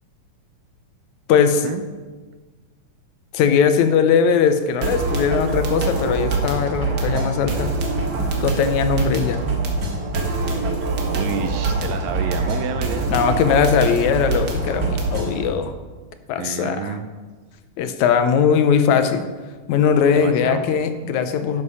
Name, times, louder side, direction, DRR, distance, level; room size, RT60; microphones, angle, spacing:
voice 1, 1.3-1.6 3.3-7.7 8.2-9.4 13.1-15.7 16.3-17.0 17.8-19.3 19.7-21.6, left 7 dB, 80° left, 9 dB, 2.1 m, -19 dB
sound 1, 4.8-15.5, right 3 dB, 45° right, 1.5 m, -24 dB
voice 2, 10.8-13.1 16.4-17.1 20.1-20.7, right 7 dB, 75° right, 9 dB, 1.7 m, -29 dB
11.0 x 6.9 x 5.6 m, 1.3 s
omnidirectional pair, 3.4 m